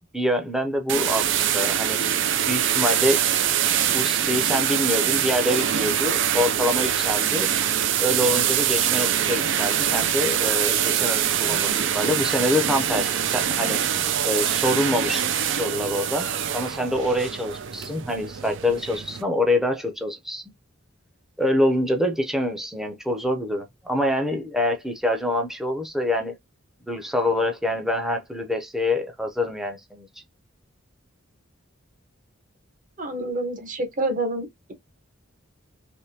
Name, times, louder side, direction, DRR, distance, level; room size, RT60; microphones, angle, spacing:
voice 1, 0.1-2.0 2.5-3.2 3.9-7.5 8.0-13.8 14.2-20.4 21.4-26.3 26.9-30.1, left 1 dB, ahead, 0.7 m, -25 dB
sound 1, 0.9-19.2, right 9 dB, 60° right, 0.5 m, -24 dB
voice 2, 33.0-34.7, right 2 dB, 40° right, 1.2 m, -28 dB
3.5 x 3.1 x 2.8 m
head